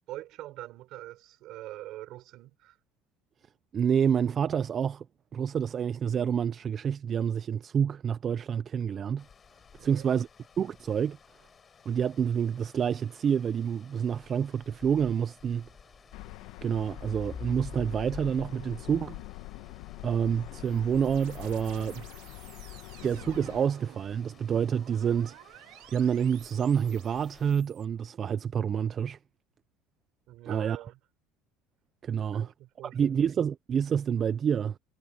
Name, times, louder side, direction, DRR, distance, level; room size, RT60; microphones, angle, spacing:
voice 1, 0.1-2.8 9.8-10.2 30.3-31.0 32.2-33.2, right 16 dB, 50° right, 6.2 m, -44 dB
voice 2, 3.7-5.0 5.3-9.2 9.8-10.3 10.6-11.2 11.9-15.7 16.6-19.2 20.0-22.0 23.0-25.4 25.9-29.2 30.5-30.8 32.0-32.5 32.8-34.8, right 8 dB, 25° right, 0.3 m, -28 dB
sound 1, 9.2-27.5, left 6 dB, 20° left, 7.0 m, -51 dB
sound 2, 16.1-23.6, left 19 dB, 70° left, 1.3 m, -44 dB
sound 3, 20.2-27.8, right 19 dB, 65° right, 2.2 m, -54 dB
cardioid pair, 160°, 0 cm